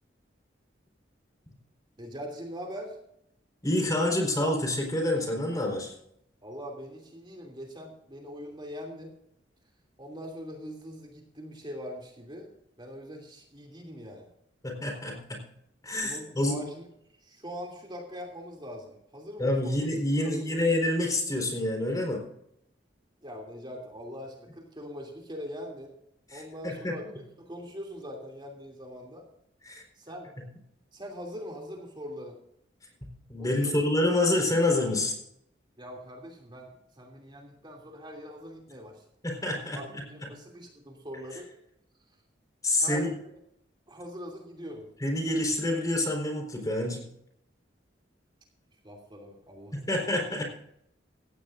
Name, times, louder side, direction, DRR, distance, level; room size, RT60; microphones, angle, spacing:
voice 1, 2.0-3.0 6.4-9.1 10.0-12.5 12.8-14.3 16.0-16.8 17.2-19.9 20.2-20.6 23.2-25.9 26.3-29.3 30.0-30.3 30.9-32.4 33.4-33.9 35.8-39.0 39.7-41.5 42.8-43.2 43.9-44.9 48.8-49.9, equal, 25° right, 0 dB, 2.7 m, -42 dB
voice 2, 3.6-5.9 14.6-15.4 15.8-16.6 19.4-22.2 26.3-26.9 29.6-29.8 33.3-35.1 39.2-40.0 42.6-43.1 45.0-47.0 49.7-50.4, left 1 dB, 20° left, 1 dB, 4.3 m, -27 dB
17.0 x 16.0 x 2.6 m, 0.75 s
head